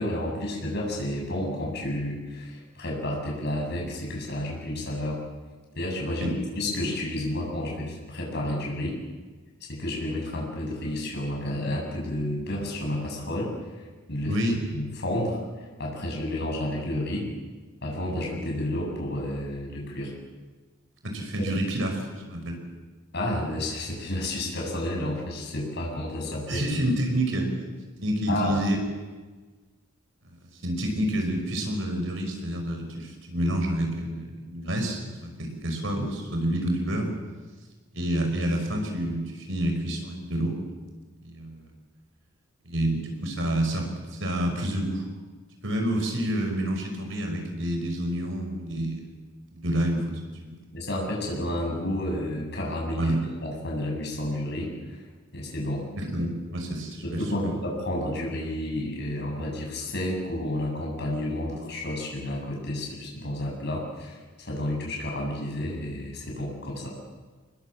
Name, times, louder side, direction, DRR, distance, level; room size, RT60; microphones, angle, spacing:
voice 1, 0.0-5.2 5.8-9.0 9.7-13.5 14.1-14.4 14.7-17.3 17.8-20.1 23.1-26.6 28.3-28.6 50.7-53.1 53.4-55.0 55.3-55.8 57.0-66.9, left 1 dB, 55° left, -1 dB, 7.8 m, -31 dB
voice 2, 14.3-14.6 21.0-22.6 26.5-27.5 28.0-28.8 30.2-30.4 30.6-37.1 37.9-40.6 41.2-41.7 42.6-45.1 45.6-49.1 49.5-50.6 53.0-53.2 56.0-57.6, right 1 dB, 65° right, 4 dB, 5.4 m, -28 dB
25.5 x 20.5 x 7.6 m, 1.3 s
head